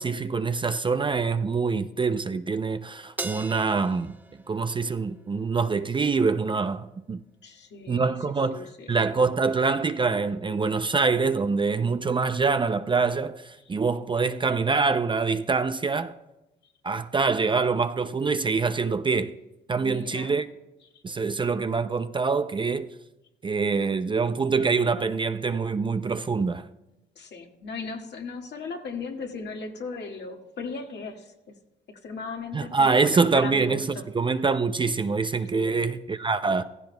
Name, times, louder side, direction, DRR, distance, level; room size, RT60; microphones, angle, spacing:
voice 1, 0.0-4.2 4.5-7.2 7.9-8.6 8.9-16.1 16.8-19.3 19.7-20.5 21.0-22.9 23.4-26.7 32.5-33.9 34.1-36.6, right 4 dB, 25° right, 0.4 m, -25 dB
Crash cymbal, 3.2-5.7, right 2 dB, 10° right, 1.0 m, -39 dB
voice 2, 7.4-8.1 8.5-9.1 19.8-20.3 27.1-31.3 32.0-34.0 35.5-35.8, left 4 dB, 60° left, 1.8 m, -37 dB
15.5 x 15.0 x 2.3 m
cardioid pair, 90°, 20 cm